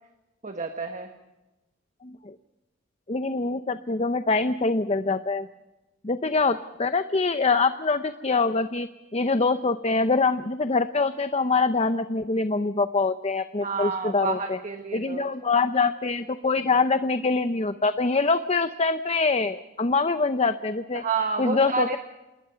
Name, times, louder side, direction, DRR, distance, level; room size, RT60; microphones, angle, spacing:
voice 1, 0.4-1.1 13.6-15.2 20.9-22.0, right 4 dB, 35° right, 5 dB, 1.5 m, -29 dB
voice 2, 2.0-2.3 3.1-5.5 6.0-14.6 14.9-21.0 21.4-22.0, left 3 dB, 30° left, 10 dB, 0.7 m, -24 dB
28.0 x 20.5 x 5.8 m, 1.1 s
head